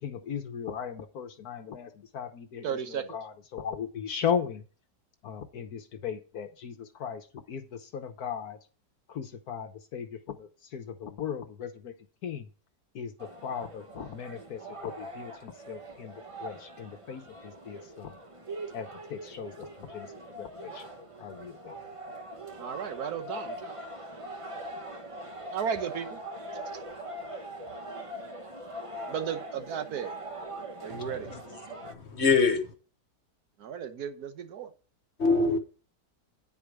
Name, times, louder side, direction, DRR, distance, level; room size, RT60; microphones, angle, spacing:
voice 1, 0.0-4.6 5.2-8.6 9.1-11.9 12.2-12.5 12.9-16.1 16.4-18.2 18.7-20.1 20.4-20.8 21.2-21.7, left 7 dB, 65° left, 1.3 m, -37 dB
voice 2, 2.6-3.0 22.5-23.7 25.5-26.2 26.6-26.7 29.1-30.2 30.8-31.3 33.6-34.7, right 8 dB, 65° right, 1.5 m, -34 dB
sound 1, 13.2-31.9, right 1 dB, 25° right, 0.8 m, -42 dB
voice 3, 31.9-32.7 35.2-35.6, left 4 dB, 45° left, 1.3 m, -24 dB
9.5 x 5.0 x 6.0 m
omnidirectional pair, 1.9 m